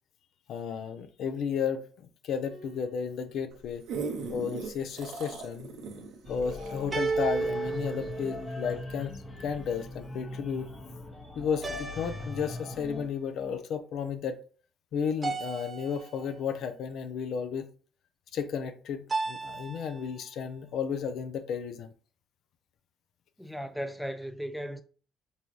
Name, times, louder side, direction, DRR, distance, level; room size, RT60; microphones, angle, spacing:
voice 1, 0.5-1.8 2.2-3.8 4.3-5.7 6.3-10.7 11.4-14.4 14.9-17.7 18.3-21.9, left 7 dB, 70° left, 0.4 m, -33 dB
sound 1, 2.5-3.2 6.9-8.9 11.6-13.0 15.2-16.4 19.1-20.1, right 4 dB, 35° right, 0.9 m, -34 dB
sound 2, 3.5-8.2 8.7-8.8, right 4 dB, 75° right, 0.7 m, -39 dB
sound 3, 6.2-13.0, left 2 dB, 35° left, 0.9 m, -41 dB
voice 2, 23.4-24.8, equal, 5° left, 0.5 m, -36 dB
4.0 x 2.3 x 3.0 m
supercardioid pair, 65°, 0 cm